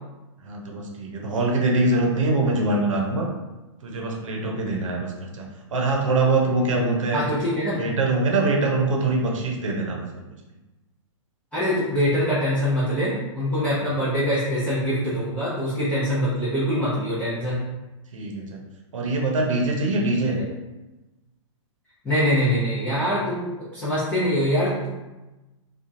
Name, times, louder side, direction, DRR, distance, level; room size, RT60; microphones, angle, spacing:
voice 1, 0.4-3.3 3.8-7.2 7.7-10.2 18.1-18.6 18.9-20.4, right 2 dB, 85° right, 0 dB, 0.7 m, -23 dB
voice 2, 7.1-7.9 11.5-17.6 22.0-24.9, equal, 10° left, -12 dB, 0.6 m, -24 dB
2.9 x 2.3 x 2.6 m, 1.1 s
hypercardioid pair, 145°, 16 cm